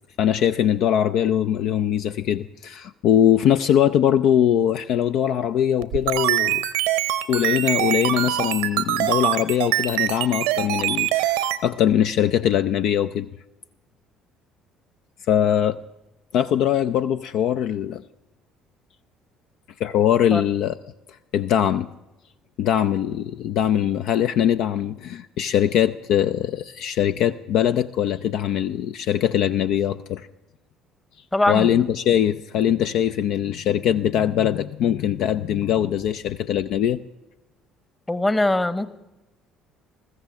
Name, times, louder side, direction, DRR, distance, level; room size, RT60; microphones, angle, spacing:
voice 1, 0.2-6.6 7.3-13.3 15.3-15.8 16.3-18.0 19.8-20.7 21.3-21.9 22.6-30.3 31.5-37.0, left 10 dB, 60° left, 11 dB, 0.4 m, -21 dB
sound 1, 5.8-11.6, right 14 dB, 75° right, 0.7 m, -23 dB
voice 2, 31.3-31.8 38.1-38.9, left 1 dB, 15° left, 14 dB, 1.0 m, -21 dB
20.5 x 14.5 x 3.5 m, 0.99 s
figure-of-eight pair, 55°, 0 cm